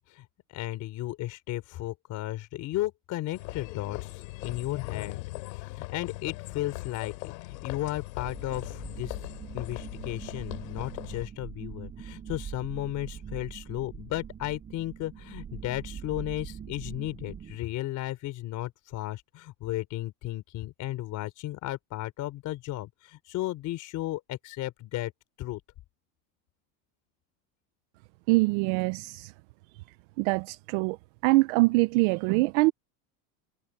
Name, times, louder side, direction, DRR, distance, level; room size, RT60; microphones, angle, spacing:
voice 1, 0.0-5.2 5.5-9.2 9.5-25.1 25.4-25.6, left 16 dB, 35° left, 3.9 m, -34 dB
sound 1, 3.3-11.3, left 22 dB, 85° left, 3.8 m, -40 dB
sound 2, 8.2-17.6, right 8 dB, 20° right, 4.4 m, -43 dB
voice 2, 28.3-29.3 30.2-31.0 31.2-32.7, right 23 dB, 50° right, 0.5 m, -24 dB
cardioid pair, 170°, 48 cm